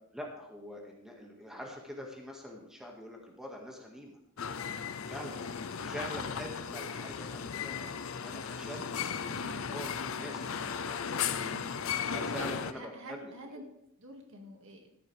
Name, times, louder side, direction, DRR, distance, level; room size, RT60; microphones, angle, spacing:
voice 1, 0.1-4.2 5.1-5.4 5.8-7.9 8.2-8.9 9.3-11.0 12.1-13.3, equal, 5° right, 0 dB, 1.8 m, -44 dB
sound 1, 4.4-12.7, left 7 dB, 70° left, 0.6 m, -36 dB
voice 2, 9.3-9.7 11.4-11.7 12.4-13.6 14.0-15.0, right 1 dB, 65° right, 2 dB, 2.1 m, -48 dB
14.0 x 10.5 x 3.4 m, 0.78 s
head